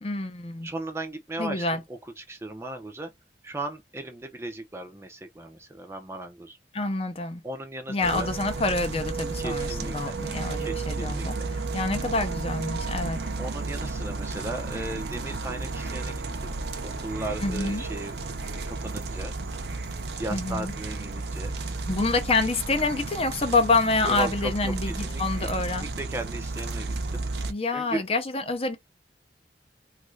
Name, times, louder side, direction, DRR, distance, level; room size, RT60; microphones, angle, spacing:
voice 1, 0.0-0.7 1.4-1.8 6.7-7.4 7.9-13.2 17.4-17.8 20.3-20.7 21.9-25.9 27.5-28.8, left 3 dB, 30° left, 0.6 m, -27 dB
voice 2, 0.6-3.1 3.4-6.6 7.4-8.3 9.4-10.2 10.6-11.7 13.4-16.1 16.4-18.2 18.5-19.6 20.2-21.7 24.0-27.2 27.7-28.0, right 2 dB, 15° right, 0.4 m, -37 dB
sound 1, 8.0-27.5, right 3 dB, 65° right, 0.6 m, -33 dB
3.1 x 2.5 x 3.1 m
head